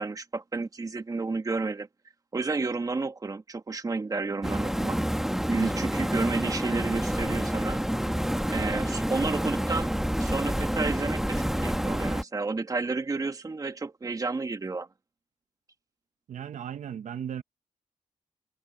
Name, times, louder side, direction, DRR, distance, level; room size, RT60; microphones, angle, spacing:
voice 1, 0.0-1.9 2.3-5.0 5.5-7.8 8.5-9.9 10.2-14.9, right 3 dB, 30° right, 1.4 m, -31 dB
sound 1, 4.4-12.2, equal, 5° right, 1.2 m, -28 dB
voice 2, 16.3-17.4, right 9 dB, 80° right, 0.9 m, -36 dB
wide cardioid pair, 120°, 12 cm